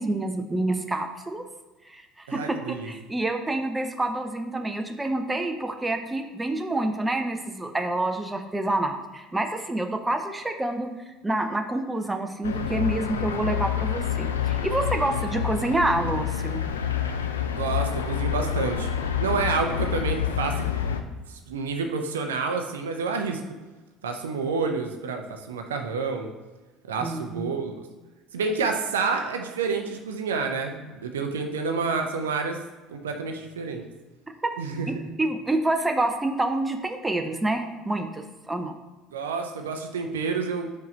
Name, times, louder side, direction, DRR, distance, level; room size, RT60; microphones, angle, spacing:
voice 1, 0.0-1.5 1.9-10.9 11.2-16.6 27.0-27.7 34.4-34.5 34.9-38.7, right 2 dB, 10° right, 5 dB, 0.6 m, -28 dB
voice 2, 2.3-2.9 12.6-12.7 17.5-18.9 19.2-20.6 21.3-23.4 24.0-26.3 26.8-27.8 28.3-32.6 32.9-33.8 34.6-34.9 39.1-40.7, right 4 dB, 75° right, 4 dB, 0.5 m, -29 dB
sound 1, 12.4-21.0, left 8 dB, 75° left, 0.4 m, -28 dB
4.7 x 4.6 x 5.0 m, 1.2 s
figure-of-eight pair, 65°, 0 cm